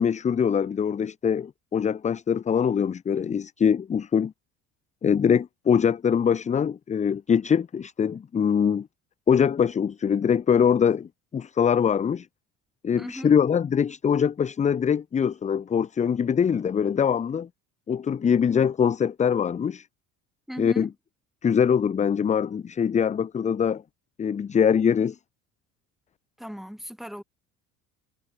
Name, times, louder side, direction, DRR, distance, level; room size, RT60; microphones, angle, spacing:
voice 1, 0.0-4.3 5.0-8.9 9.3-12.3 12.8-17.5 17.9-19.9 20.6-20.9 21.4-23.8 24.2-25.2, left 7 dB, 20° left, 0.5 m, -23 dB
voice 2, 13.0-13.4 20.5-20.9 26.4-27.2, equal, ahead, 5.6 m, -37 dB
hypercardioid pair, 60°, 41 cm